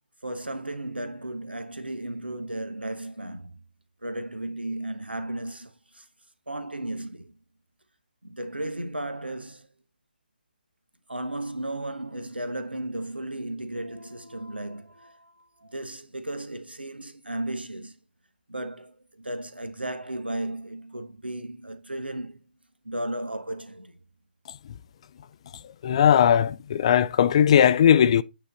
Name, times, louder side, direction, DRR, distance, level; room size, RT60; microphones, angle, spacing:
voice 1, 0.2-3.6 4.0-6.1 6.5-7.3 8.2-9.7 11.1-17.9 18.5-22.4 22.8-24.0, right 1 dB, 85° right, 1.2 m, -35 dB
voice 2, 25.8-28.2, left 9 dB, 35° left, 0.4 m, -18 dB
9.0 x 3.2 x 4.1 m
figure-of-eight pair, 140°, 5 cm